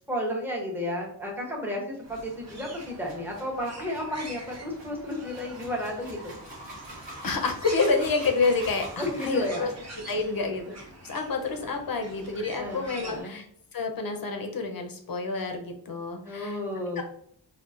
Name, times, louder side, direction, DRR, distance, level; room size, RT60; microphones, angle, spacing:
voice 1, 0.1-6.4 9.0-9.7 12.6-13.4 16.2-17.0, left 1 dB, 5° right, -1 dB, 0.7 m, -32 dB
sound 1, 2.0-13.2, right 2 dB, 35° right, 0.7 m, -45 dB
sound 2, 2.0-9.9, right 1 dB, 90° right, 1.1 m, -45 dB
voice 2, 7.2-9.7 10.1-10.7 11.0-13.5 13.7-16.6 17.0-17.1, left 4 dB, 55° left, 4 dB, 0.6 m, -28 dB
3.8 x 2.3 x 2.4 m, 0.64 s
wide cardioid pair, 105°, 43 cm